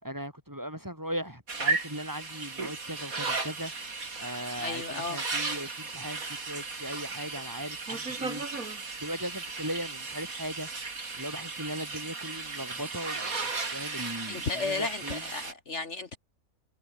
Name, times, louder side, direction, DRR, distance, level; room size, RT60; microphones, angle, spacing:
voice 1, 0.0-3.7 4.2-8.4 9.0-10.7 11.1-15.2, equal, 15° right, 4.9 m, -38 dB
sound 1, 1.5-15.5, right 4 dB, 80° right, 3.6 m, -35 dB
voice 2, 4.6-5.2 14.3-16.2, left 4 dB, 55° left, 2.0 m, -34 dB
omnidirectional pair, 1.5 m